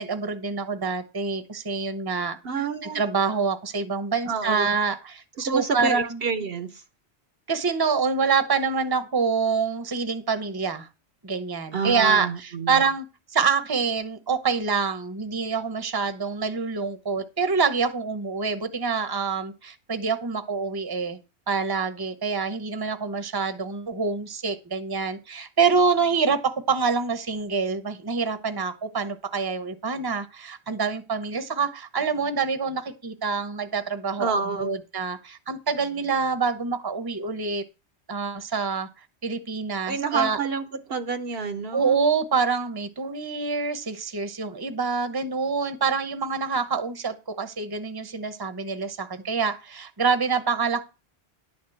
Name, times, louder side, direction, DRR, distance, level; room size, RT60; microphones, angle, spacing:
voice 1, 0.0-2.4 2.9-6.2 7.5-10.9 11.2-13.0 13.3-21.2 21.5-37.6 38.1-38.9 39.2-40.4 41.7-50.8, right 5 dB, 20° right, 0.9 m, -26 dB
voice 2, 2.4-3.0 4.3-4.7 5.4-6.8 11.7-12.8 34.2-34.7 39.9-42.0, right 5 dB, 60° right, 1.0 m, -28 dB
11.0 x 4.4 x 7.8 m
omnidirectional pair, 1.1 m